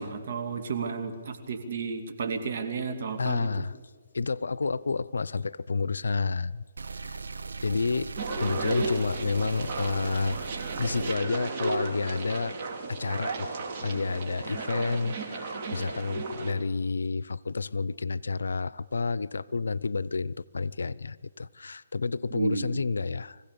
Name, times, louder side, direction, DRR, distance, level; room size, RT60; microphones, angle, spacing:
voice 1, 0.0-3.5 22.3-22.8, right 4 dB, 60° right, 7 dB, 2.6 m, -32 dB
voice 2, 3.2-3.8 4.1-6.6 7.0-7.2 7.6-8.1 8.4-10.4 10.8-12.6 12.9-23.4, left 4 dB, 85° left, 19 dB, 0.6 m, -30 dB
sound 1, 6.8-11.2, right 4 dB, 85° right, 0.7 m, -39 dB
sound 2, 8.2-16.5, right 3 dB, 40° right, 2.9 m, -34 dB
25.0 x 16.0 x 6.8 m, 1.5 s
hypercardioid pair, 150°, 0 cm